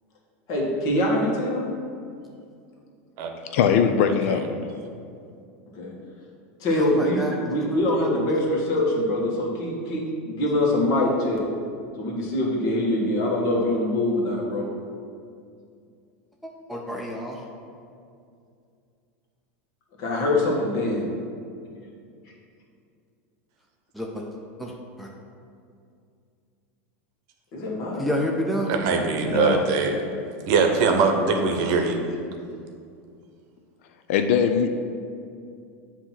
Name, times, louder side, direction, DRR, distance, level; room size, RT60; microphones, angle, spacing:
voice 1, 0.5-1.7 5.8-5.9 6.6-11.4 12.0-14.7 20.0-21.1 27.5-28.1, left 1 dB, 50° left, -3 dB, 1.6 m, -24 dB
voice 2, 3.5-4.4 29.3-29.7 34.1-34.7, left 7 dB, 70° left, 7 dB, 0.4 m, -20 dB
voice 3, 6.7-7.4 16.4-17.4 23.9-24.3 24.6-24.7 25.0-25.1 28.0-28.7, equal, ahead, -1 dB, 0.5 m, -29 dB
voice 4, 28.7-30.0 30.5-32.0, right 5 dB, 50° right, 4 dB, 0.8 m, -22 dB
7.8 x 2.9 x 5.8 m, 2.4 s
supercardioid pair, 135°, 7 cm